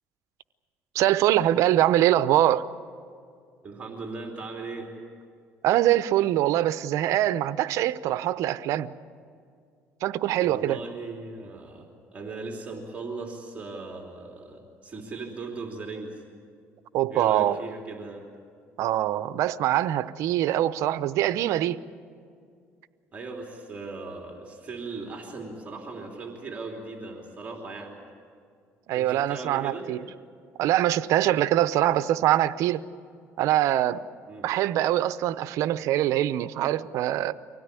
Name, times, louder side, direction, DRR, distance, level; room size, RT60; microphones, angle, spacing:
voice 1, 0.9-2.7 5.6-8.9 10.0-10.8 16.9-17.6 18.8-21.8 28.9-30.0 30.6-32.8 33.4-34.0 34.4-37.3, right 13 dB, 70° right, 14 dB, 0.8 m, -23 dB
voice 2, 3.6-4.9 10.4-16.1 17.1-18.2 23.1-28.0 28.9-29.9 34.3-34.5, right 3 dB, 25° right, 1 dB, 3.2 m, -38 dB
24.5 x 17.0 x 9.8 m, 2.2 s
cardioid pair, 115°, 5 cm